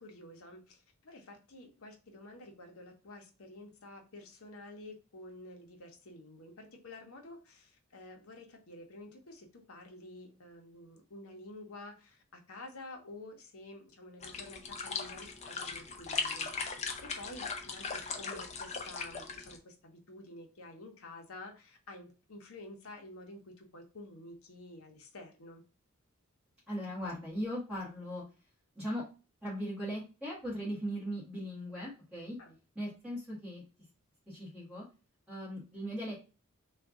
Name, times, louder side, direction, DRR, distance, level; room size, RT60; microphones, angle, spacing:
voice 1, 0.0-16.5 17.0-25.6 32.4-32.6, left 2 dB, 75° left, 3 dB, 0.9 m, -50 dB
sound 1, 14.2-19.6, left 4 dB, 30° left, 0.6 m, -39 dB
voice 2, 26.7-28.2 28.7-29.0 29.4-32.4 32.7-33.6 34.3-34.8 35.3-36.1, equal, 5° right, -10 dB, 1.6 m, -38 dB
3.5 x 2.5 x 3.6 m, 0.33 s
head